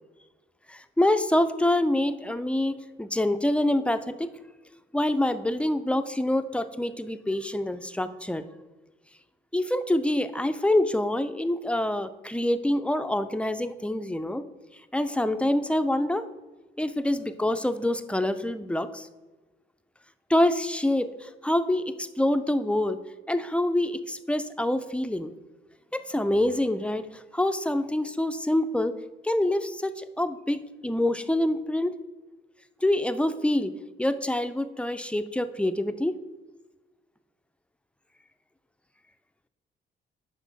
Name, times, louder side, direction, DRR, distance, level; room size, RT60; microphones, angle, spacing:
voice 1, 0.7-4.3 4.9-8.4 9.5-14.5 14.9-16.2 16.8-19.1 20.3-23.0 23.3-25.3 25.9-29.0 29.2-31.9 32.8-33.7 34.0-36.2, left 1 dB, 5° left, 10 dB, 0.4 m, -26 dB
8.4 x 5.6 x 4.0 m, 1.2 s
cardioid pair, 90°, 20 cm